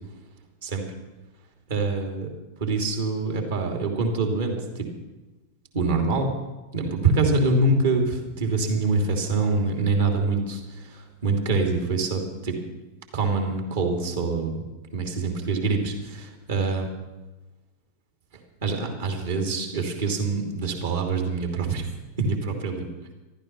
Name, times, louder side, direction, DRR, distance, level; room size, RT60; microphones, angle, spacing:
voice 1, 1.7-2.3 2.6-4.6 5.7-6.3 6.7-12.6 13.1-14.6 14.9-16.9 18.6-21.9 22.2-22.9, right 3 dB, 60° right, 3 dB, 2.8 m, -25 dB
14.0 x 12.5 x 6.0 m, 1.1 s
figure-of-eight pair, 90°, 0 cm